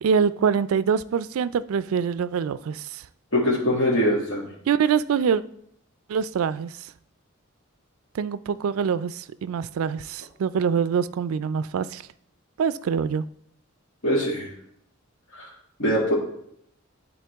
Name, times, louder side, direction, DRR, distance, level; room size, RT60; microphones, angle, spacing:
voice 1, 0.0-3.0 4.7-5.4 6.1-6.7 8.1-12.0 12.6-13.2, right 6 dB, 90° right, 0.3 m, -24 dB
voice 2, 3.3-4.5 14.0-14.5 15.3-15.5 15.8-16.1, equal, 65° left, 2.1 m, -22 dB
11.0 x 4.2 x 3.4 m
head